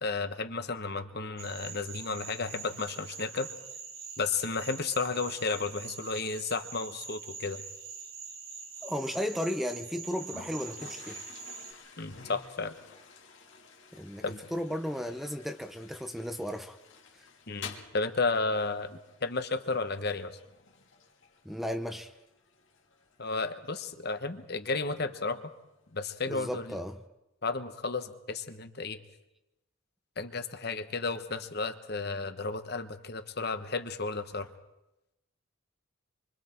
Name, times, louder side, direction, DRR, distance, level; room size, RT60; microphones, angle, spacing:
voice 1, 0.0-3.5 4.2-7.6 12.0-12.7 14.2-14.4 17.5-20.4 23.2-25.4 25.9-26.8 27.4-29.0 30.2-34.5, left 4 dB, 50° left, 1.1 m, -33 dB
sound 1, 1.4-11.7, right 5 dB, 75° right, 3.9 m, -44 dB
voice 2, 8.8-11.2 13.9-14.2 14.5-16.8 17.1-17.2 21.4-22.1 26.3-27.0, equal, ahead, 0.7 m, -34 dB
Toilet flush, 10.0-27.1, left 5 dB, 65° left, 2.5 m, -52 dB
26.5 x 24.5 x 4.5 m
head